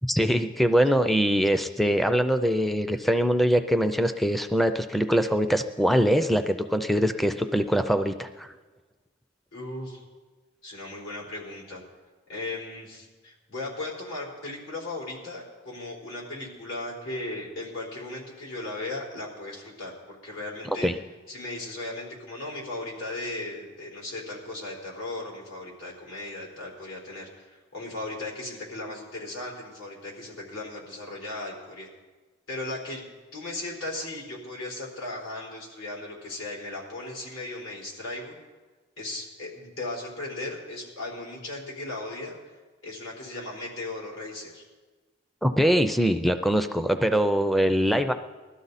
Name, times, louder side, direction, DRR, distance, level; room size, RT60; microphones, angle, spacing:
voice 1, 0.1-8.5 20.8-20.9 45.4-48.1, equal, ahead, 7 dB, 0.4 m, -23 dB
voice 2, 9.5-10.0 10.6-11.8 12.3-20.9 21.3-31.9 32.5-33.1 33.3-38.4 39.0-42.4 42.8-44.6, left 2 dB, 90° left, -3 dB, 4.4 m, -37 dB
20.5 x 13.0 x 4.1 m, 1.3 s
head